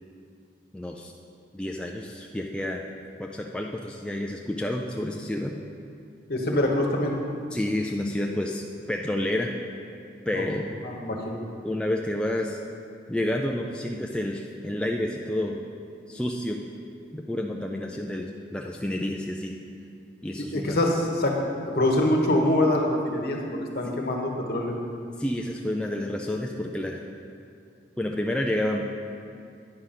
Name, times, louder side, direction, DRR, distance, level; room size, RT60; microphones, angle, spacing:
voice 1, 0.7-1.1 1.5-2.9 3.2-5.5 7.5-9.5 10.3-10.7 11.6-12.6 13.1-15.6 16.1-16.6 17.1-19.6 20.2-20.8 25.2-27.0 28.0-28.8, left 1 dB, 5° left, 0 dB, 0.3 m, -29 dB
voice 2, 6.3-7.2 10.3-10.4 10.8-11.4 20.5-21.4 21.7-24.7, left 1 dB, 55° left, 0 dB, 1.1 m, -24 dB
9.6 x 5.0 x 5.7 m, 2.4 s
head